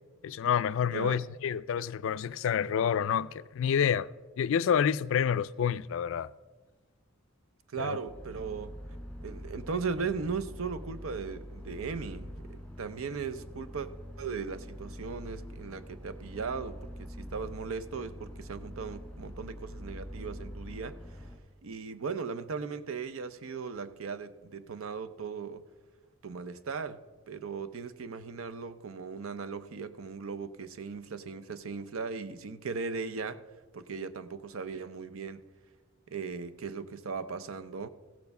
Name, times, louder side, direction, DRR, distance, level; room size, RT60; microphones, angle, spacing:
voice 1, 0.2-4.1 4.4-6.3 7.8-8.0, left 8 dB, 65° left, 0.3 m, -28 dB
voice 2, 0.9-1.2 7.7-8.7 9.2-13.9 14.2-21.2 21.6-25.6 26.2-27.0 27.3-33.4 33.7-35.4 36.1-37.9, right 5 dB, 75° right, 0.6 m, -38 dB
sound 1, 8.1-21.4, equal, 5° left, 1.9 m, -44 dB
15.5 x 7.1 x 5.3 m
head